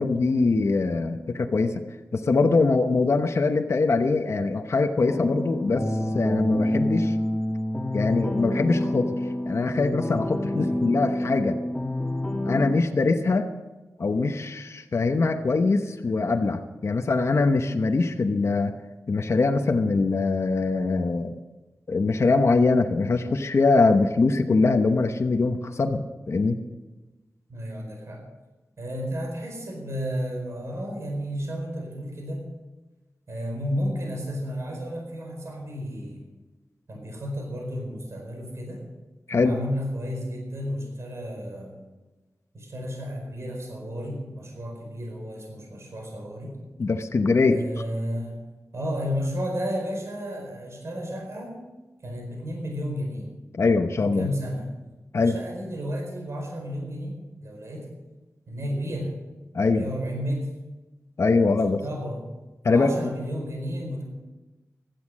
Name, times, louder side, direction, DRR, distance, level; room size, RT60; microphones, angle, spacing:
voice 1, 0.0-1.8 2.1-5.8 6.1-7.2 7.9-9.2 9.5-11.6 12.5-13.5 14.0-18.7 19.1-21.3 21.9-26.6 39.3-39.5 46.8-47.6 53.6-54.3 55.1-55.4 59.5-59.9 61.2-61.8 62.6-62.9, left 3 dB, 55° left, 6 dB, 0.9 m, -22 dB
sound 1, 5.1-12.7, left 1 dB, 10° left, 1.7 m, -27 dB
voice 2, 27.5-28.2 28.8-32.4 33.3-36.2 36.9-38.8 39.3-41.8 42.5-46.5 47.5-48.4 48.7-51.6 52.0-53.3 54.0-54.7 55.2-57.1 57.4-57.9 58.5-59.1 59.6-60.5 61.3-62.2 62.7-64.0, equal, 55° right, 1 dB, 4.6 m, -32 dB
16.0 x 12.0 x 6.3 m, 1.2 s
wide cardioid pair, 120°, 6 cm